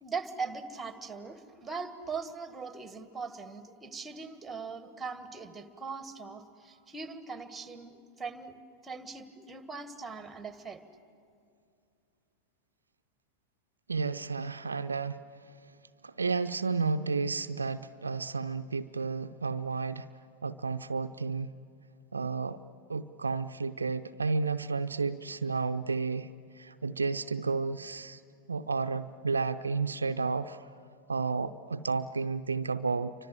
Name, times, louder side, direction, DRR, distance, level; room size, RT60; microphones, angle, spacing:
voice 1, 0.0-8.5 8.8-10.8, right 4 dB, 10° right, 11 dB, 1.6 m, -40 dB
voice 2, 13.9-15.2 16.0-20.1 20.4-21.5 22.1-22.6 22.9-26.3 26.6-28.2 28.5-30.7 31.1-33.1, right 4 dB, 75° right, 10 dB, 0.5 m, -32 dB
29.5 x 25.0 x 7.5 m, 2.5 s
figure-of-eight pair, 90°, 0 cm